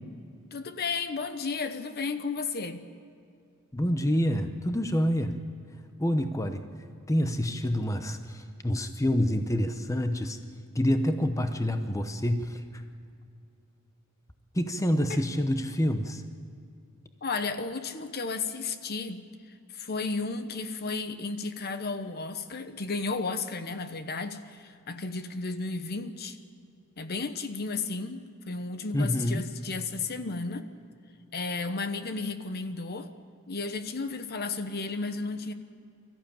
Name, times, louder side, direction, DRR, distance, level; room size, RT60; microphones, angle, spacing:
voice 1, 0.5-2.8 15.1-15.2 17.2-19.2 19.7-26.4 27.0-30.7 31.3-33.1 33.5-35.5, left 4 dB, 45° left, 10 dB, 1.0 m, -33 dB
voice 2, 3.7-5.4 6.0-6.6 7.1-10.4 10.7-12.8 14.5-16.2 28.9-29.4, equal, 15° left, 8 dB, 0.9 m, -27 dB
23.5 x 14.5 x 8.8 m, 2.5 s
head